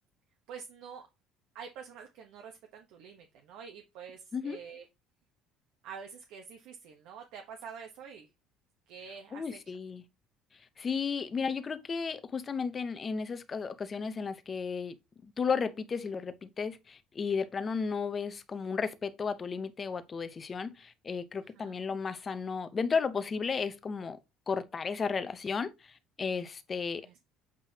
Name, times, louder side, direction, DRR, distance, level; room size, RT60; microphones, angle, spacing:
voice 1, 0.5-1.1 1.5-4.8 5.8-8.3 8.9-9.6 21.6-21.7 27.0-27.2, right 6 dB, 60° right, 1.0 m, -47 dB
voice 2, 9.3-10.0 10.8-15.0 15.4-24.2 24.5-25.7 26.2-27.2, left 5 dB, 20° left, 0.7 m, -34 dB
7.5 x 5.4 x 2.8 m
cardioid pair, 170°, 0 cm